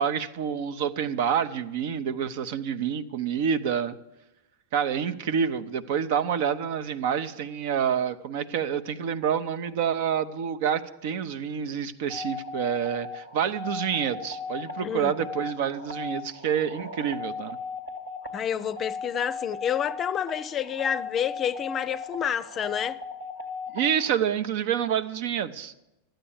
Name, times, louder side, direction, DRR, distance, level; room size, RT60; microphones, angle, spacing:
voice 1, 0.0-4.0 4.7-17.6 23.7-25.7, right 8 dB, 60° right, 0.7 m, -28 dB
sound 1, 12.1-24.1, left 4 dB, 85° right, 1.8 m, -37 dB
voice 2, 14.8-15.1 18.3-23.0, left 8 dB, 30° left, 0.5 m, -29 dB
13.0 x 9.0 x 7.1 m
hypercardioid pair, 100°, 0 cm